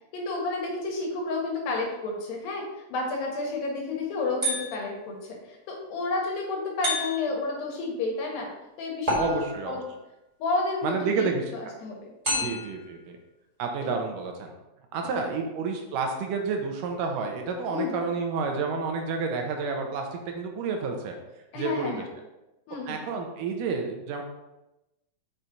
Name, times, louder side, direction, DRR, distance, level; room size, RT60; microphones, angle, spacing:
voice 1, 0.1-8.5 8.8-9.8 10.4-11.3 11.5-12.5 13.8-13.9 15.0-15.2 17.7-18.0 21.5-22.0 22.7-23.0, left 3 dB, 85° left, 0 dB, 3.2 m, -31 dB
sound 1, 4.4-5.0 6.8-7.5 9.1-9.8 12.2-12.8, equal, 15° right, 1.6 m, -29 dB
voice 2, 9.2-9.8 10.8-11.5 12.3-13.2 13.6-14.5 14.9-21.2 21.5-22.0 22.9-24.2, right 4 dB, 80° right, 3 dB, 2.3 m, -30 dB
6.0 x 5.5 x 3.9 m, 0.95 s
omnidirectional pair, 4.0 m